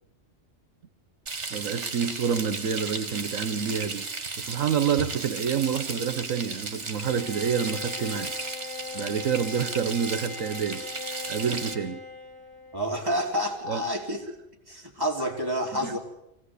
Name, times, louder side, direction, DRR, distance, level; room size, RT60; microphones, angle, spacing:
Frying (food), 1.3-11.7, right 4 dB, 60° right, 2.1 m, -35 dB
voice 1, 1.5-8.4 8.9-10.9 11.1-12.0 13.7-13.8 15.7-16.0, right 7 dB, 80° right, 1.4 m, -28 dB
Bowed string instrument, 7.0-13.1, left 5 dB, 45° left, 4.7 m, -40 dB
voice 2, 12.7-14.3 14.7-16.0, equal, 15° right, 3.7 m, -29 dB
24.0 x 16.0 x 8.3 m
omnidirectional pair, 1.4 m